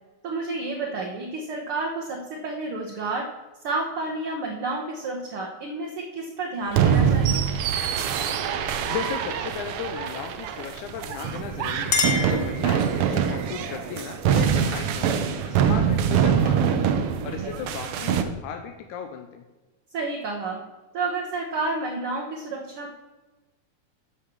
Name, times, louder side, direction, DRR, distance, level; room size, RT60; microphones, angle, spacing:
voice 1, 0.2-3.3 3.6-7.4 12.2-12.3 17.2-17.5 19.9-20.6 20.9-22.9, right 3 dB, 60° right, -1 dB, 1.6 m, -30 dB
sound 1, 6.7-18.2, right 8 dB, 85° right, 1.2 m, -24 dB
voice 2, 8.8-16.9 17.2-19.4, left 8 dB, 80° left, 5 dB, 2.1 m, -36 dB
Chink clink, 11.3-13.2, left 5 dB, 50° left, 1.4 m, -29 dB
9.8 x 5.7 x 6.9 m, 1.2 s
omnidirectional pair, 3.5 m